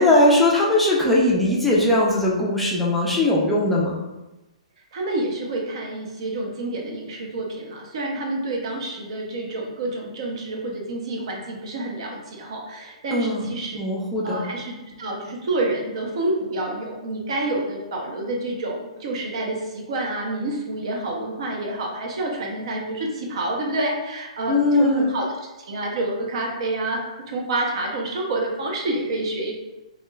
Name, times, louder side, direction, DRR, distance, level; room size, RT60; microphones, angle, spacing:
voice 1, 0.0-3.9 13.1-14.4 24.5-25.1, left 1 dB, 5° left, -6 dB, 0.4 m, -20 dB
voice 2, 4.9-13.8 14.2-29.5, right 2 dB, 55° right, 0 dB, 0.6 m, -28 dB
2.4 x 2.1 x 3.1 m, 1.0 s
figure-of-eight pair, 125°, 4 cm